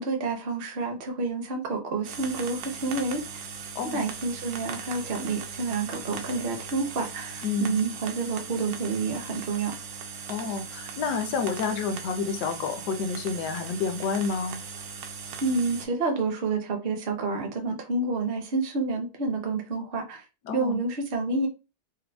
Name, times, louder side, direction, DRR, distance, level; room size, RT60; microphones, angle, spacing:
voice 1, 0.0-3.4 3.9-9.7 15.4-20.2 20.5-21.5, right 3 dB, 50° right, 0.7 m, -29 dB
sound 1, 2.0-15.9, right 6 dB, 70° right, 1.0 m, -39 dB
voice 2, 7.4-7.8 10.3-14.6 20.4-20.8, left 5 dB, 80° left, 1.2 m, -29 dB
4.9 x 2.1 x 2.3 m
omnidirectional pair, 1.8 m